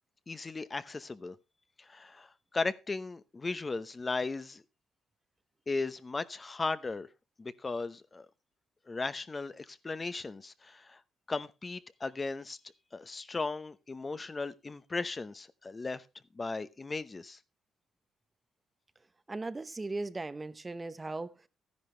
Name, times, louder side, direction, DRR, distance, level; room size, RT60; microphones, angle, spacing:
voice 1, 0.3-1.4 1.8-4.6 5.7-7.1 7.4-8.3 8.9-11.0 11.3-12.6 12.9-16.0 16.3-17.4, left 3 dB, 25° left, 0.8 m, -36 dB
voice 2, 19.3-21.5, right 2 dB, 20° right, 0.8 m, -38 dB
13.0 x 10.5 x 3.2 m
cardioid pair, 90°, 0 cm